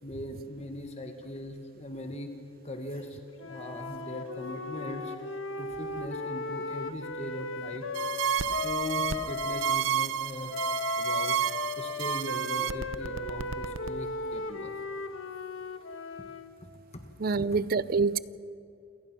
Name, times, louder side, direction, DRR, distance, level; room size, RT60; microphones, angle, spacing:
voice 1, 0.0-2.3 2.6-5.1 5.6-7.9 8.6-10.6 11.0-14.8 16.9-17.0, left 1 dB, 35° left, 1.5 m, -40 dB
Wind instrument woodwind instrument, 3.4-9.8 10.5-16.5, left 3 dB, 80° left, 1.3 m, -36 dB
sound 1, 7.9-13.9, right 9 dB, 85° right, 0.7 m, -30 dB
voice 2, 17.2-18.2, right 4 dB, 50° right, 0.5 m, -26 dB
27.5 x 19.0 x 6.0 m
head